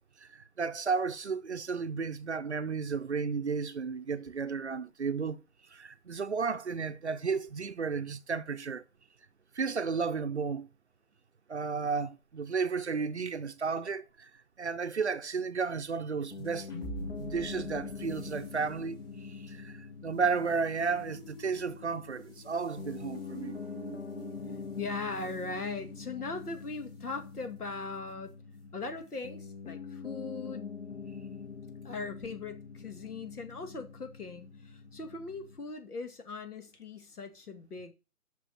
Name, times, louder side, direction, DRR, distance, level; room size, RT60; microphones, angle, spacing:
voice 1, 0.2-5.4 5.7-8.8 9.5-10.7 11.5-16.7 17.1-23.6, right 5 dB, 50° right, 0.6 m, -33 dB
Piano, 16.3-35.7, left 5 dB, 50° left, 1.0 m, -44 dB
sound 1, 16.3-26.8, right 2 dB, 15° left, 1.6 m, -48 dB
voice 2, 24.8-28.3 28.7-30.8 31.8-37.9, left 3 dB, 90° left, 2.2 m, -39 dB
6.9 x 6.1 x 7.3 m
hypercardioid pair, 175°, 44 cm